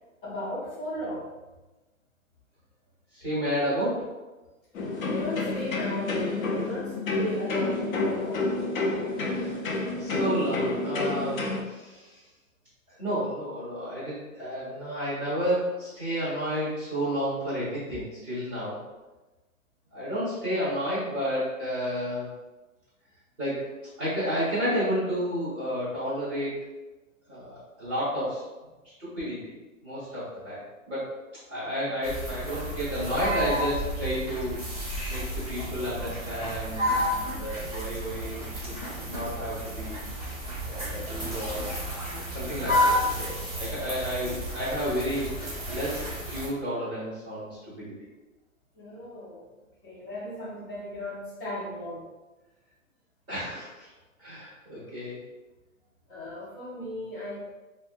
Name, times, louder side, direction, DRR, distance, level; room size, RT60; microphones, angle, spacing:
voice 1, 0.2-1.3 5.0-8.5 48.7-49.5 49.8-52.1 56.1-57.5, left 1 dB, 40° left, -9 dB, 0.8 m, -36 dB
voice 2, 3.1-4.1 9.2-9.5 10.0-12.2 12.9-18.8 19.9-22.3 23.4-23.7 24.0-26.6 27.3-28.4 28.8-29.5 29.8-31.2 31.5-38.8 39.0-40.4 40.6-41.7 42.3-45.3 45.7-47.9 53.3-53.9 54.2-55.2, equal, 10° right, -13 dB, 0.8 m, -31 dB
sound 1, 4.7-11.6, left 2 dB, 75° left, 0.6 m, -29 dB
sound 2, 32.0-46.5, equal, 30° right, 0.4 m, -31 dB
2.6 x 2.0 x 2.4 m, 1.1 s
hypercardioid pair, 175°, 42 cm